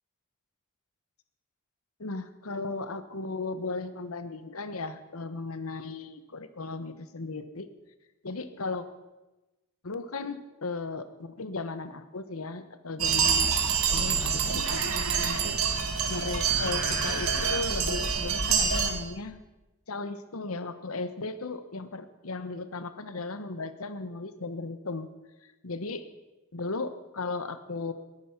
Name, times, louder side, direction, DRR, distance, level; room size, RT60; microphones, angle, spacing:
voice 1, 2.0-7.7 8.2-8.8 9.8-13.5 13.9-19.4 19.9-25.1 25.6-26.1 26.5-27.9, left 3 dB, 90° left, 11 dB, 1.2 m, -36 dB
sound 1, 13.0-18.9, right 6 dB, 85° right, 2.0 m, -26 dB
20.5 x 9.3 x 6.0 m, 1.1 s
head